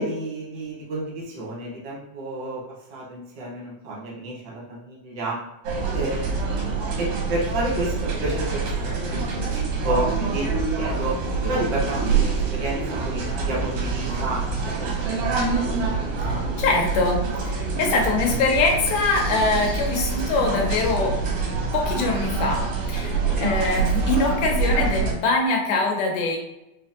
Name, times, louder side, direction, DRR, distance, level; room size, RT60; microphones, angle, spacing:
voice 1, 0.0-2.6 2.9-5.4 5.9-10.5 10.8-15.3 23.2-23.5, right 2 dB, 65° right, -5 dB, 0.8 m, -30 dB
sound 1, 5.6-25.1, right 4 dB, 90° right, 2.2 m, -26 dB
voice 2, 16.2-21.2 21.7-22.6 22.9-26.4, left 3 dB, 85° left, 1 dB, 2.3 m, -23 dB
5.4 x 2.1 x 2.8 m, 0.93 s
omnidirectional pair, 3.4 m